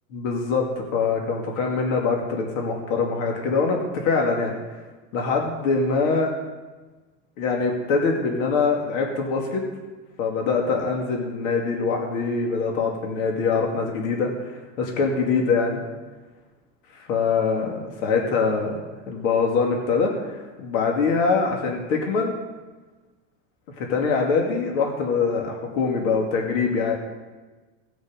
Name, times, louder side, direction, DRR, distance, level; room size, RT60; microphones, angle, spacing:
voice 1, 0.1-4.5 5.1-6.3 7.4-9.6 10.2-15.8 16.9-18.8 19.1-22.3 23.8-26.9, left 4 dB, 80° left, 0 dB, 2.4 m, -23 dB
18.0 x 6.3 x 5.1 m, 1.3 s
supercardioid pair, 140°, 39 cm